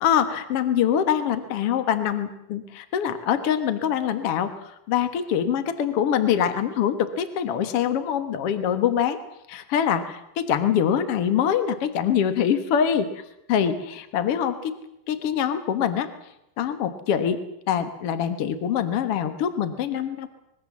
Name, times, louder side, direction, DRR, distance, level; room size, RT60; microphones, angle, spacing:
voice 1, 0.0-4.5 4.9-9.2 9.5-13.1 13.5-14.8 15.1-16.1 16.6-20.3, left 9 dB, 70° left, 10 dB, 1.4 m, -24 dB
25.0 x 21.0 x 7.3 m, 0.84 s
omnidirectional pair, 4.7 m